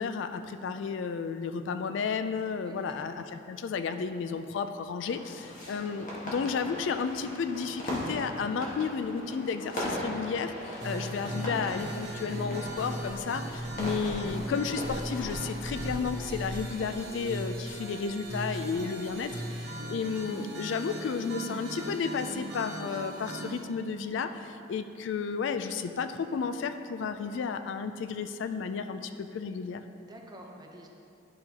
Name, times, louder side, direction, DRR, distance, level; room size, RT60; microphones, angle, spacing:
voice 1, 0.0-19.4 19.9-29.8, left 5 dB, 70° left, 9 dB, 0.3 m, -32 dB
voice 2, 2.6-3.0 10.6-11.0 19.5-19.7 30.0-30.9, right 1 dB, 20° right, 0 dB, 0.8 m, -50 dB
sound 1, 5.1-15.7, equal, 45° left, 1.5 m, -39 dB
sound 2, 10.8-23.6, right 1 dB, 65° right, 0.9 m, -38 dB
Dog, 15.4-16.6, equal, 30° left, 1.6 m, -45 dB
11.0 x 5.7 x 2.9 m, 2.6 s
head